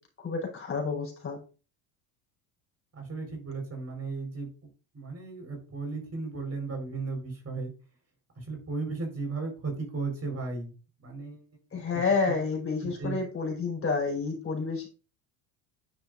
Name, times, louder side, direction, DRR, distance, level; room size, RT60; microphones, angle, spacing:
voice 1, 0.2-1.4 11.7-14.9, left 4 dB, 30° left, 0 dB, 4.4 m, -29 dB
voice 2, 2.9-4.5 4.9-7.7 8.4-10.7 11.0-11.4 11.7-11.8 12.8-13.2, right 3 dB, 35° right, 2 dB, 4.3 m, -35 dB
10.0 x 6.4 x 2.5 m, 0.34 s
supercardioid pair, 90°, 43 cm